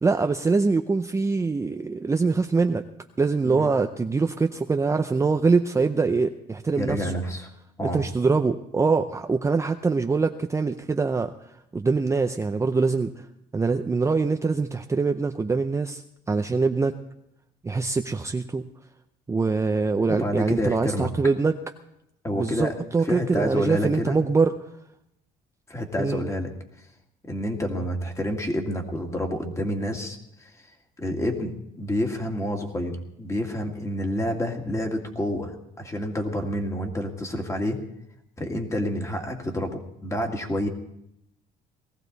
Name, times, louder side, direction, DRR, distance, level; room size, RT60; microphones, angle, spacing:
voice 1, 0.0-2.8 3.2-7.1 7.8-11.3 11.7-13.3 13.5-17.0 17.6-18.6 19.3-21.5 22.3-24.5 26.0-26.2, right 4 dB, 15° right, 6 dB, 0.6 m, -24 dB
voice 2, 6.8-7.5 7.8-8.0 20.1-21.1 22.2-22.7 23.0-24.2 25.7-26.5 26.8-26.9 27.2-30.5 31.0-37.8 38.4-40.7, equal, 15° left, 3 dB, 2.2 m, -28 dB
19.0 x 14.5 x 4.0 m, 0.81 s
cardioid pair, 110°, 17 cm